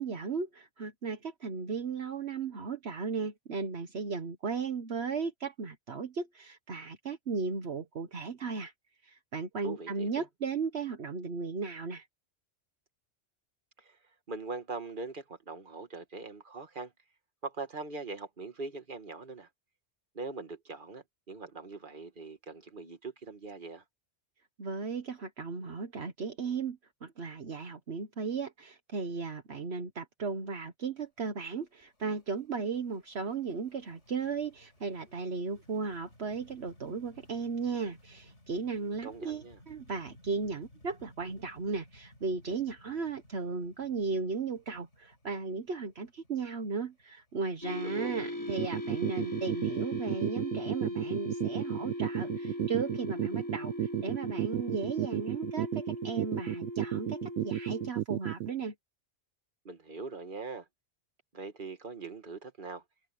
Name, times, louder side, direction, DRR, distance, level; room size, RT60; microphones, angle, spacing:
voice 1, 0.0-8.7 9.0-12.1 24.6-58.7, right 4 dB, 65° right, 1.5 m, -36 dB
voice 2, 9.6-10.2 13.8-14.0 14.3-16.9 17.4-19.5 20.1-23.8 39.0-39.6 47.8-48.3 59.7-60.7 61.3-62.8, right 4 dB, 45° right, 2.0 m, -42 dB
sound 1, 31.1-49.8, left 1 dB, 80° left, 5.3 m, -60 dB
sound 2, 47.6-57.9, left 1 dB, 15° left, 1.8 m, -39 dB
sound 3, 48.5-58.5, right 12 dB, 80° right, 0.9 m, -32 dB
omnidirectional pair, 1.2 m